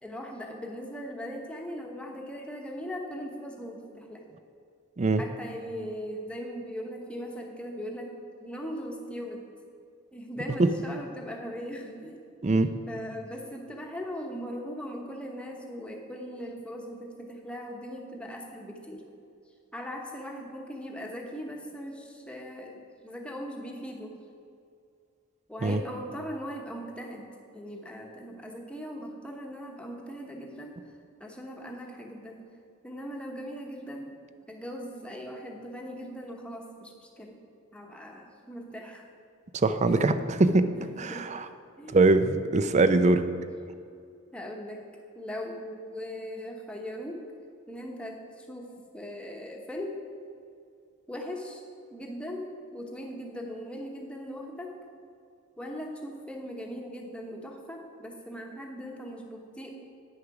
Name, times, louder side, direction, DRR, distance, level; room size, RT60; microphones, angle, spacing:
voice 1, 0.0-4.2 5.2-8.1 8.4-9.4 10.1-12.2 12.9-19.0 19.7-24.2 25.5-30.7 31.2-32.4 32.8-34.1 34.5-37.4 37.7-39.1 39.9-40.0 40.7-41.3 41.8-42.0 44.3-44.8 45.1-47.2 47.7-48.7 48.9-50.0 51.1-51.6 51.9-54.7 55.6-59.7, equal, 5° left, 1 dB, 1.1 m, -39 dB
voice 2, 39.6-40.7 41.0-41.4 41.9-43.2, right 3 dB, 35° right, 11 dB, 0.5 m, -22 dB
9.4 x 6.6 x 5.9 m, 2.3 s
head